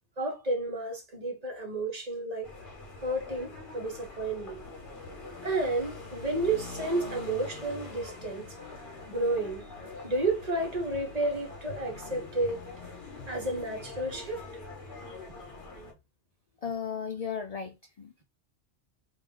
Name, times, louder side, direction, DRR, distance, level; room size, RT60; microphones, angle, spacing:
voice 1, 0.2-2.5 3.0-4.6 5.4-8.5 9.1-9.7 10.0-12.6 13.3-14.4, right 2 dB, 35° right, 1.1 m, -31 dB
sound 1, 2.4-15.9, left 3 dB, 45° left, 1.3 m, -44 dB
voice 2, 16.6-18.2, left 6 dB, 75° left, 0.3 m, -35 dB
3.2 x 2.6 x 3.6 m
omnidirectional pair, 1.2 m